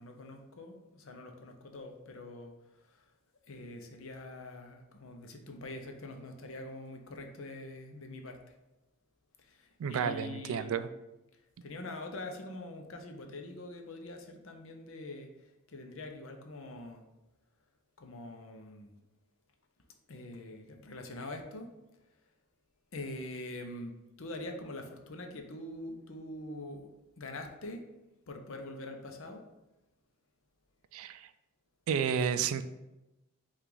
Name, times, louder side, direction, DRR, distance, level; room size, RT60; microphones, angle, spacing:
voice 1, 0.0-3.0 3.5-8.5 9.4-10.8 11.6-17.0 18.0-18.9 20.1-21.7 22.9-26.9 27.2-27.8 28.3-29.5, left 2 dB, 65° left, 4 dB, 0.6 m, -44 dB
voice 2, 9.8-10.9 30.9-31.3 31.9-32.6, right 7 dB, 75° right, 12 dB, 0.3 m, -31 dB
5.6 x 2.5 x 3.9 m, 0.99 s
head